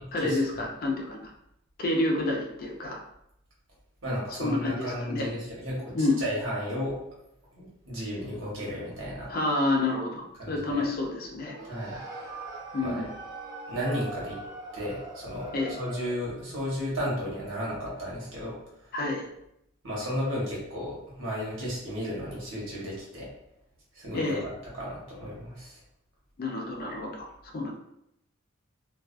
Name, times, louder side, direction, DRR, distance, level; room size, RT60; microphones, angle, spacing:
voice 1, 0.1-1.3 1.8-3.0 4.4-5.3 5.9-6.2 9.3-11.6 12.7-13.0 15.5-15.7 18.9-19.3 24.1-24.4 26.4-27.7, left 2 dB, 45° left, 1 dB, 0.4 m, -29 dB
voice 2, 4.0-6.9 7.5-9.3 10.4-10.8 11.7-12.0 12.8-13.0 13.7-14.4 14.7-18.9 19.8-23.3 23.9-24.4 24.7-25.8, equal, 70° right, -6 dB, 1.1 m, -34 dB
sound 1, 11.5-16.3, right 2 dB, 20° right, 0.6 m, -41 dB
2.3 x 2.3 x 2.4 m, 0.79 s
head